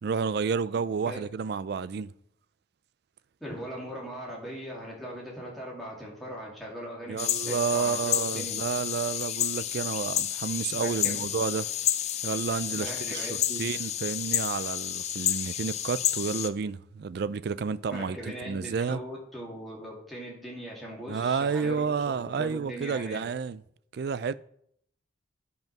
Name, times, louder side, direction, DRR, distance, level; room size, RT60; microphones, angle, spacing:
voice 1, 0.0-2.1 7.1-11.7 12.2-18.2 18.4-19.0 21.1-23.6 23.9-24.3, right 5 dB, 55° right, 0.3 m, -30 dB
voice 2, 3.4-8.6 10.7-11.3 12.7-13.6 17.9-23.2, equal, ahead, 2.5 m, -40 dB
sound 1, 7.2-16.5, left 11 dB, 35° left, 0.4 m, -30 dB
9.2 x 5.3 x 5.9 m
head